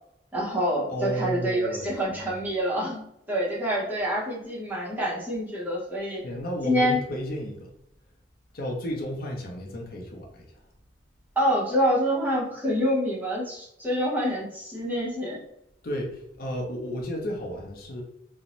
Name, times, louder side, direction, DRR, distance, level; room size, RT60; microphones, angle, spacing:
voice 1, 0.3-6.2 6.6-7.0 11.4-15.4, equal, 10° right, -6 dB, 0.8 m, -26 dB
voice 2, 0.9-2.4 6.2-7.7 8.5-10.5 15.8-18.0, equal, 55° left, 0 dB, 0.5 m, -33 dB
2.5 x 2.0 x 2.9 m, 0.78 s
head